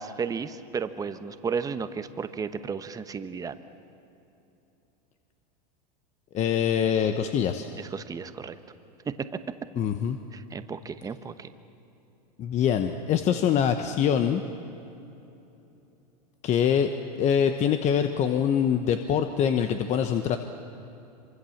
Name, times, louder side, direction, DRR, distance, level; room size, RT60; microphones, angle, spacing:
voice 1, 0.0-3.5 7.8-8.6 9.1-9.3 10.3-11.5, right 6 dB, 15° right, 11 dB, 1.1 m, -33 dB
voice 2, 6.3-7.7 9.8-10.2 12.4-14.4 16.4-16.9 17.2-20.4, left 8 dB, 35° left, 7 dB, 1.1 m, -24 dB
26.0 x 24.5 x 7.3 m, 2.9 s
supercardioid pair, 125°, 21 cm